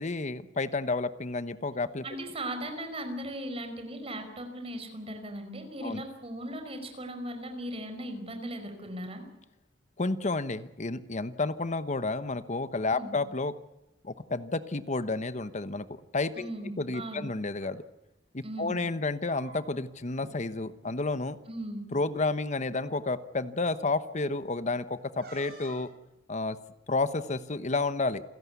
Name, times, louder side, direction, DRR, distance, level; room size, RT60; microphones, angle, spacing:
voice 1, 0.0-2.0 5.8-6.0 10.0-13.5 14.0-16.5 16.8-17.8 18.3-21.4 21.9-25.9 26.3-26.6 26.9-28.2, left 3 dB, 40° left, 13 dB, 1.0 m, -31 dB
voice 2, 2.0-9.2 12.9-13.2 16.4-17.3 18.4-18.8 21.5-21.8, right 1 dB, 30° right, 6 dB, 5.1 m, -38 dB
sound 1, 17.6-17.8 19.0-19.9 20.2-20.4 20.7-21.0 21.9-22.0 22.7-22.9 25.2-25.9, right 2 dB, 60° right, 7.6 m, -49 dB
28.5 x 17.0 x 8.3 m, 0.92 s
head